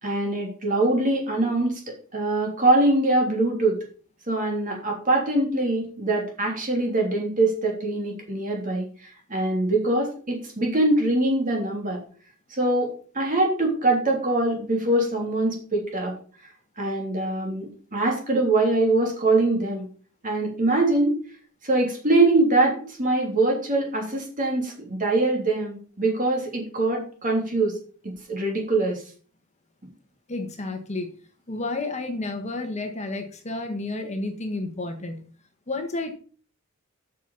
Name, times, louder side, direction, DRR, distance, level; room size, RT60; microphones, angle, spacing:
voice 1, 0.0-3.8 4.3-12.0 12.5-16.1 16.8-19.9 20.2-21.2 21.6-27.8 28.0-29.0, right 2 dB, 40° right, 0 dB, 3.2 m, -23 dB
voice 2, 30.3-31.1 31.5-35.3 35.7-36.1, left 2 dB, 30° left, 4 dB, 1.3 m, -31 dB
8.2 x 6.1 x 5.5 m, 0.41 s
head